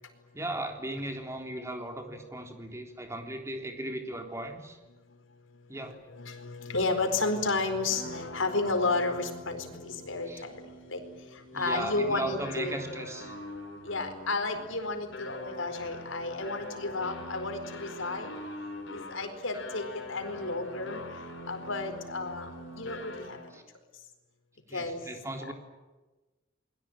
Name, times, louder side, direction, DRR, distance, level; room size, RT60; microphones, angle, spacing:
voice 1, 0.3-4.8 5.7-6.0 10.3-10.4 11.5-13.3 23.5-23.6 24.7-25.5, right 1 dB, 15° right, 3 dB, 3.7 m, -37 dB
voice 2, 6.2-10.6 10.9-11.0 11.5-12.7 13.8-18.4 18.9-21.0 21.5-22.5 22.8-23.4 24.7-25.0 25.5-25.6, left 3 dB, 90° left, 7 dB, 4.5 m, -32 dB
sound 1, 6.9-23.6, left 2 dB, 70° left, 4.5 m, -43 dB
28.5 x 22.0 x 9.0 m, 1.2 s
head